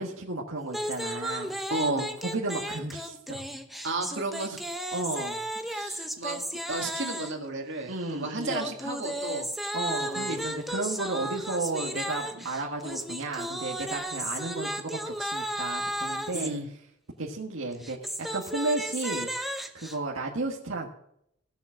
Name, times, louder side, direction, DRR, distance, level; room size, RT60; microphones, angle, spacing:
voice 1, 0.0-1.6 2.2-3.5 4.9-5.4 7.9-8.7 9.7-16.5 17.2-19.3 19.7-20.9, right 2 dB, 80° right, -2 dB, 1.5 m, -33 dB
sound 1, 0.7-7.5 8.4-16.5 17.7-20.0, equal, ahead, 0.9 m, -34 dB
voice 2, 1.7-2.1 3.8-4.6 5.7-9.5 10.0-10.4 12.3-12.4 16.3-16.7, right 2 dB, 60° right, 2 dB, 2.2 m, -33 dB
16.5 x 7.0 x 6.1 m, 0.75 s
head